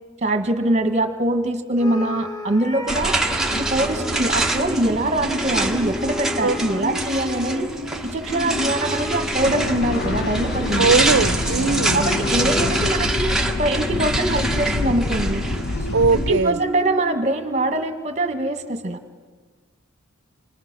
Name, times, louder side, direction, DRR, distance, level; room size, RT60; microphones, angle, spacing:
voice 1, 0.2-3.2 3.5-7.7 8.0-10.9 11.9-15.4 16.1-19.0, right 1 dB, 35° right, 7 dB, 1.7 m, -23 dB
sound 1, 1.8-4.8 5.8-10.6 12.0-18.1, left 3 dB, 20° left, 1.3 m, -35 dB
sound 2, 2.9-16.4, right 1 dB, 5° right, 1.3 m, -25 dB
sound 3, 9.4-16.4, left 2 dB, 50° left, 0.7 m, -27 dB
voice 2, 10.8-12.0 15.9-16.6, right 4 dB, 60° right, 15 dB, 0.7 m, -19 dB
28.5 x 20.5 x 6.3 m, 1.5 s
head